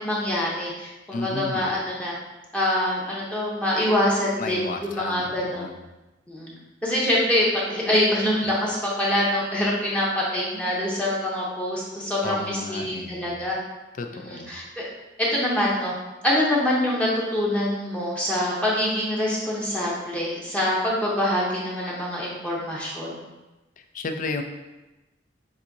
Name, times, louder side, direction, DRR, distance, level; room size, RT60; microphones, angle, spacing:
voice 1, 0.0-2.1 2.5-5.7 6.3-6.5 6.8-13.6 14.2-14.8 15.2-15.9 16.2-23.2, left 1 dB, 5° left, -6 dB, 0.7 m, -25 dB
voice 2, 1.1-1.7 4.4-5.8 12.2-13.4 14.0-14.6 23.9-24.4, left 3 dB, 45° left, 6 dB, 0.4 m, -33 dB
7.3 x 2.7 x 2.6 m, 1.1 s
head